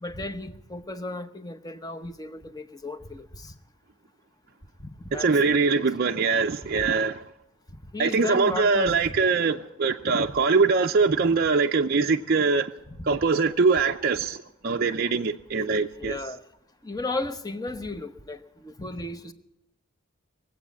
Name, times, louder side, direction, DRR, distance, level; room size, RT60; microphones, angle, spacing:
voice 1, 0.0-3.5 5.0-5.3 7.9-8.9 13.0-13.1 16.0-16.4 16.8-19.3, left 2 dB, 15° left, 0.9 m, -34 dB
voice 2, 5.1-7.2 8.0-12.7 13.0-16.2, right 4 dB, 45° right, 0.5 m, -23 dB
21.0 x 8.3 x 8.4 m
head